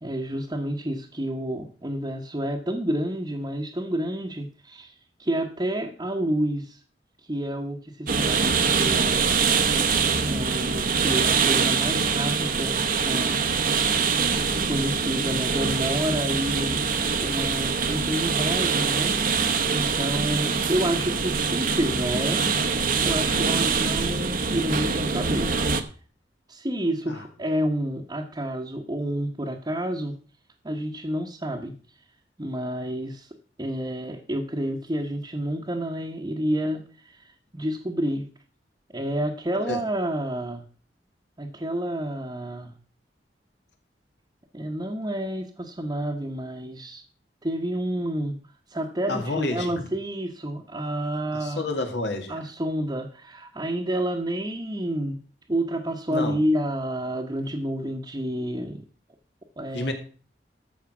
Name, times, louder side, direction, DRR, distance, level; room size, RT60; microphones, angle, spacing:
voice 1, 0.0-4.9 5.2-6.8 7.3-9.3 10.2-13.4 14.6-16.9 17.2-19.1 19.7-22.4 23.0-25.5 26.5-30.2 30.6-31.7 32.4-33.3 33.6-38.3 38.9-40.6 41.4-42.7 44.5-47.0 47.4-48.4 48.7-51.7 52.3-55.2 55.5-58.8 59.6-59.9, right 1 dB, 25° right, -2 dB, 1.1 m, -29 dB
sound 1, 8.1-25.8, right 5 dB, 50° right, 0.9 m, -24 dB
voice 2, 49.1-49.9 51.3-52.3 56.1-56.4 59.7-59.9, left 2 dB, 75° left, 4 dB, 2.3 m, -29 dB
13.5 x 4.9 x 6.0 m, 0.40 s
head